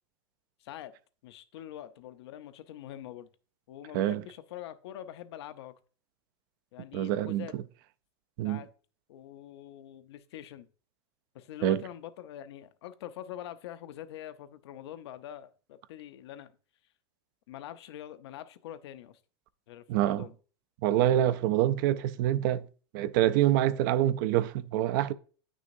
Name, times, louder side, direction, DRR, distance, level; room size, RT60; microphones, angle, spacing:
voice 1, 0.6-1.0 1.2-3.3 3.7-5.8 6.7-7.6 8.4-8.7 9.1-10.7 11.3-16.5 17.5-19.2 19.7-20.3, left 11 dB, 75° left, 0.7 m, -44 dB
voice 2, 6.9-7.6 8.4-8.6 11.6-11.8 19.9-20.2 20.8-22.7 22.9-25.1, right 12 dB, 50° right, 0.4 m, -26 dB
9.3 x 6.2 x 2.6 m
supercardioid pair, 160°, 14 cm